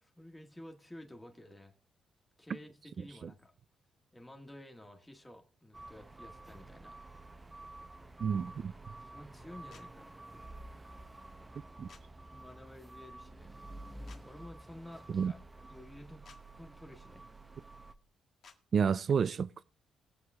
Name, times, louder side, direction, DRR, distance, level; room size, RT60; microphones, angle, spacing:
voice 1, 0.0-1.7 2.4-3.5 4.1-7.0 9.0-10.5 12.3-13.7 14.2-16.2 16.6-17.2, left 1 dB, 10° left, 1.7 m, -52 dB
sound 1, 5.7-17.9, right 2 dB, 15° right, 0.8 m, -50 dB
voice 2, 8.2-8.7 11.8-11.9 15.1-15.3 18.7-19.5, right 6 dB, 50° right, 0.4 m, -29 dB
sound 2, 9.7-9.9 11.9-12.0 14.1-14.2 16.2-16.4 18.4-18.6, left 6 dB, 60° left, 1.7 m, -55 dB
20.5 x 7.2 x 3.6 m
cardioid pair, 90°, 0 cm